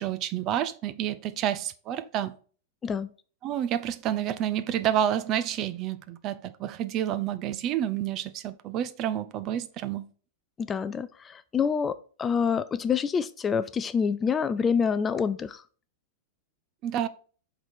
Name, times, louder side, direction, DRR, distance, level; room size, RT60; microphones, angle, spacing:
voice 1, 0.0-2.3 3.4-10.1 16.8-17.1, right 10 dB, 35° right, 0.5 m, -29 dB
voice 2, 10.6-15.6, left 6 dB, 15° left, 0.3 m, -27 dB
7.8 x 4.0 x 4.3 m
supercardioid pair, 150°, 0 cm